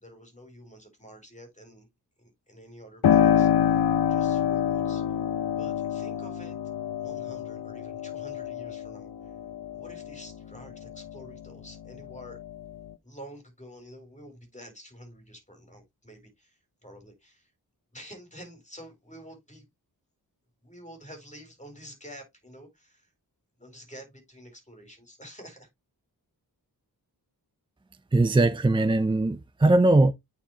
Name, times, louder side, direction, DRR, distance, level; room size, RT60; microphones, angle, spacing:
voice 1, 0.0-1.9 2.2-3.8 4.1-5.0 5.6-6.6 7.0-9.4 9.7-12.4 13.0-17.5 17.9-19.7 20.6-23.1 23.6-25.7, equal, 20° left, 4.1 m, -48 dB
Piano, 3.0-11.5 11.9-12.9, left 9 dB, 70° left, 0.8 m, -27 dB
voice 2, 28.1-30.1, right 2 dB, 15° right, 0.4 m, -20 dB
8.9 x 4.9 x 2.9 m
wide cardioid pair, 85°, 40 cm